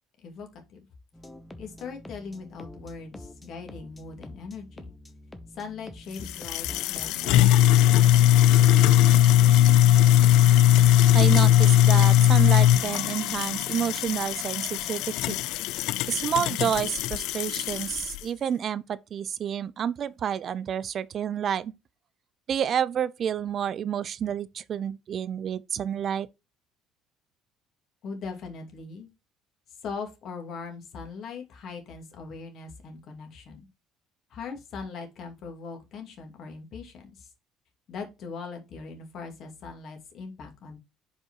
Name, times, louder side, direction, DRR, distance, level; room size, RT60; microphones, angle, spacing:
voice 1, 0.2-0.8 1.6-4.9 5.5-8.4 28.0-29.1 29.8-33.7 34.3-37.3 37.9-40.8, left 5 dB, 50° left, 2.4 m, -40 dB
sound 1, 1.1-12.4, left 1 dB, 10° left, 0.9 m, -46 dB
sound 2, 6.2-18.2, left 12 dB, 75° left, 0.3 m, -20 dB
voice 2, 11.1-15.0 15.3-15.4 16.1-21.7 22.5-26.3, right 8 dB, 45° right, 0.4 m, -29 dB
5.2 x 4.8 x 4.7 m
cardioid pair, 120°, 0 cm